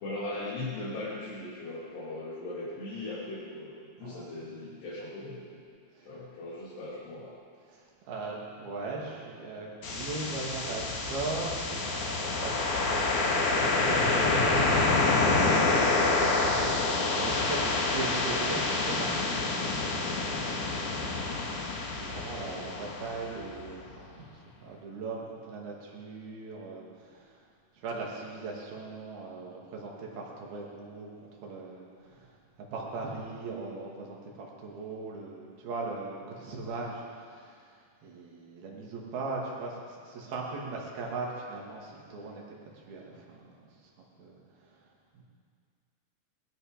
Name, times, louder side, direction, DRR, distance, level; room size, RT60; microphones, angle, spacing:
voice 1, 0.0-5.6 6.1-7.3, left 2 dB, 80° left, -10 dB, 5.0 m, -39 dB
voice 2, 4.0-4.4 5.9-6.1 7.7-14.8 15.5-27.4 27.7-31.1 31.4-32.3 32.6-43.9 44.2-44.8 45.1-45.2, right 3 dB, 65° right, -2 dB, 4.1 m, -40 dB
sound 1, 9.8-23.7, left 3 dB, 55° left, 3.0 m, -27 dB
20.0 x 14.0 x 5.2 m, 2.1 s
omnidirectional pair, 4.8 m